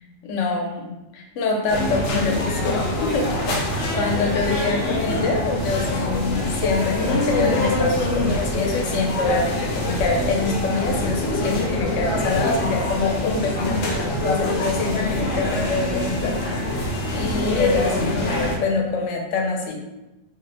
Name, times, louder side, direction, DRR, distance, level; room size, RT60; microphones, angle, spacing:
voice 1, 0.0-19.8, left 4 dB, 90° left, 1 dB, 1.0 m, -25 dB
sound 1, 1.7-18.6, left 1 dB, 65° left, 0.8 m, -24 dB
2.7 x 2.1 x 3.8 m, 0.98 s
omnidirectional pair, 1.2 m